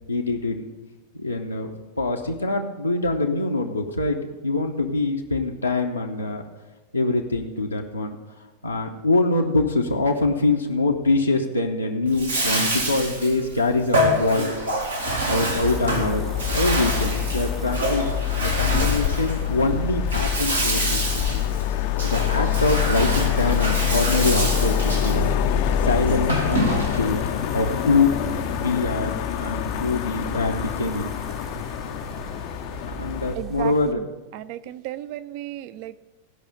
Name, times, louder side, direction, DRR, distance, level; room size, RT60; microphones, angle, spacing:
voice 1, 0.1-0.7 1.2-1.7 2.0-6.4 6.9-8.2 8.6-14.5 15.3-21.4 21.8-25.4 25.8-27.2 27.5-28.1 28.6-31.1 33.0-34.0, left 2 dB, 85° left, -1 dB, 0.7 m, -24 dB
Bathtub (filling or washing), 12.1-27.2, right 1 dB, 80° right, 1.6 m, -27 dB
sound 1, 15.1-33.9, right 3 dB, 30° right, 0.8 m, -39 dB
sound 2, 15.6-33.3, left 10 dB, 45° left, 0.4 m, -26 dB
voice 2, 33.4-34.1 34.3-36.0, right 13 dB, 45° right, 15 dB, 0.4 m, -34 dB
15.5 x 5.6 x 5.2 m, 1.2 s
figure-of-eight pair, 90°, 0 cm